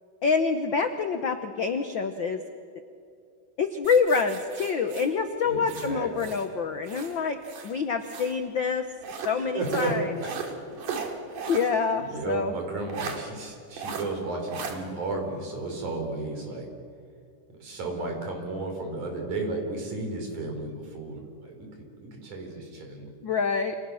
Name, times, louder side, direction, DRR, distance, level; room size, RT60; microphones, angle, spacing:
voice 1, 0.2-2.4 3.6-7.4 7.6-8.8 9.2-10.1 11.5-12.5 23.2-23.7, left 5 dB, 70° left, 7 dB, 1.1 m, -26 dB
sound 1, 3.8-6.5 6.8-8.4 9.0-11.8 12.1-12.2 12.9-13.2 13.8-14.1 14.5-14.8, right 6 dB, 90° right, 3.8 m, -37 dB
voice 2, 5.4-6.3 9.4-9.9 10.2-10.5 12.0-16.7 17.6-23.1, right 2 dB, 70° right, 2 dB, 5.8 m, -34 dB
28.5 x 28.5 x 6.4 m, 2.4 s
omnidirectional pair, 3.6 m